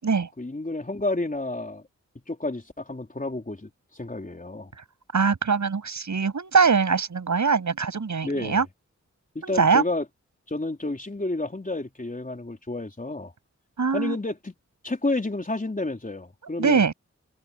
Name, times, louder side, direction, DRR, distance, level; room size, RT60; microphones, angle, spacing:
voice 1, 0.4-1.8 2.3-4.7 8.2-8.7 9.3-10.0 10.5-13.3 13.9-14.5 14.8-16.8, left 2 dB, 30° left, 4.1 m, -30 dB
voice 2, 5.1-8.7 9.4-9.8 13.8-14.2 16.6-16.9, right 5 dB, 80° right, 7.2 m, -22 dB
cardioid pair, 55°, 29 cm